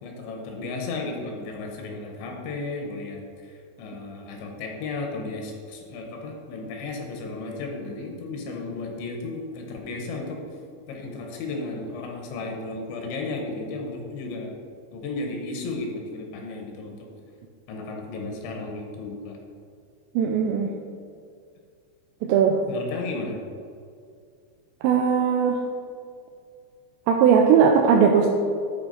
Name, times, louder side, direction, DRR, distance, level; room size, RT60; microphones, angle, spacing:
voice 1, 0.0-10.4 10.9-14.6 14.9-17.1 17.7-19.4 22.7-23.4, left 3 dB, 80° left, 1 dB, 3.2 m, -34 dB
voice 2, 20.2-20.7 22.2-22.6 24.8-25.6 27.1-28.3, right 7 dB, 85° right, 1 dB, 2.7 m, -19 dB
12.5 x 4.6 x 4.0 m, 2.3 s
omnidirectional pair, 5.2 m